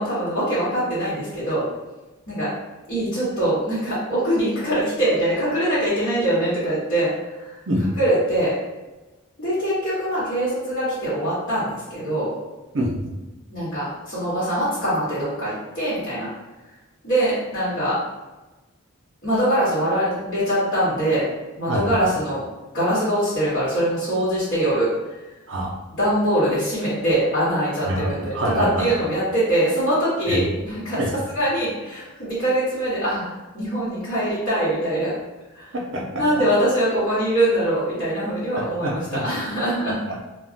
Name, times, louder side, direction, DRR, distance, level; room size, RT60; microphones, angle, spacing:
voice 1, 0.0-1.7 2.3-2.5 2.9-7.6 8.0-8.5 9.4-12.3 13.5-16.3 17.0-18.0 19.2-21.2 21.6-22.4 22.7-24.9 25.9-31.0 31.3-33.3 33.5-35.1 35.5-35.7 36.2-40.0, right 1 dB, 50° left, -11 dB, 1.1 m, -23 dB
voice 2, 25.5-25.8 27.9-28.9 30.3-30.4 31.0-31.1 35.7-36.2 38.6-39.2 40.1-40.2, right 1 dB, 55° right, -1 dB, 0.5 m, -25 dB
2.3 x 2.1 x 3.7 m, 1.1 s
head